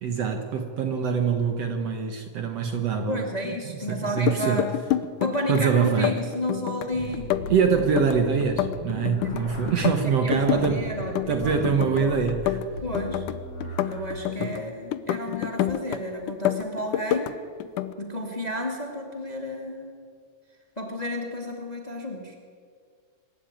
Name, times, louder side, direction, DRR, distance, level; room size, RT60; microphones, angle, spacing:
voice 1, 0.0-3.3 3.9-4.6 5.5-6.2 7.5-10.8 11.3-12.6 14.4-14.6, right 6 dB, 60° right, 5 dB, 2.0 m, -24 dB
voice 2, 3.1-4.7 5.2-7.3 9.2-9.4 10.0-12.2 12.8-13.2 13.8-17.3 18.0-20.0 20.7-22.4, left 1 dB, 15° left, 2 dB, 1.8 m, -32 dB
Binaural Bongos (mic test), 4.1-5.6 5.9-6.9 7.1-9.4 9.7-10.7 11.0-12.0 12.3-14.6 14.9-16.0 16.3-17.3 17.6-17.9, left 13 dB, 80° left, 2.3 m, -28 dB
sound 1, 6.9-14.0, left 1 dB, 55° left, 5.1 m, -38 dB
24.0 x 12.5 x 9.1 m, 2.1 s
omnidirectional pair, 3.7 m